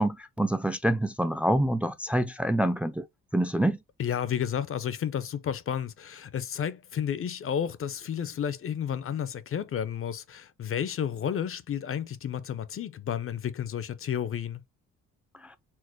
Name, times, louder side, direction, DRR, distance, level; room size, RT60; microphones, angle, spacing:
voice 1, 0.0-3.0 3.3-3.8, right 1 dB, 5° right, 0.5 m, -26 dB
voice 2, 4.0-14.6, left 8 dB, 45° left, 0.6 m, -31 dB
4.4 x 2.0 x 4.4 m
cardioid pair, 90°, 30 cm